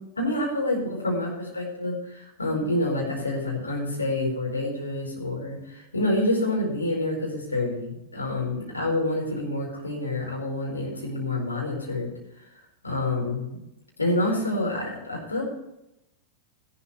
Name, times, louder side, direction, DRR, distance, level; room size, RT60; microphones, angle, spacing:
voice 1, 0.2-12.1 12.8-13.6 14.0-15.4, left 1 dB, 80° left, -1 dB, 4.6 m, -27 dB
14.5 x 12.0 x 3.2 m, 0.86 s
figure-of-eight pair, 90°, 0 cm